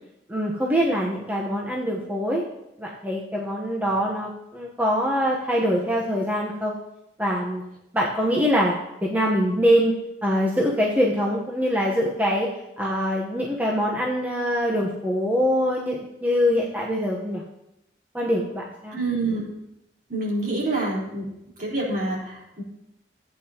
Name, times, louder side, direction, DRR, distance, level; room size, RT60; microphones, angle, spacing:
voice 1, 0.3-2.4 2.8-6.8 7.2-7.6 7.9-9.9 10.2-12.5 12.8-17.4 18.1-19.0, equal, 10° right, -3 dB, 1.0 m, -24 dB
voice 2, 18.9-19.4 20.1-21.3 21.6-22.6, right 2 dB, 50° right, -6 dB, 4.1 m, -27 dB
15.5 x 8.9 x 2.9 m, 0.85 s
head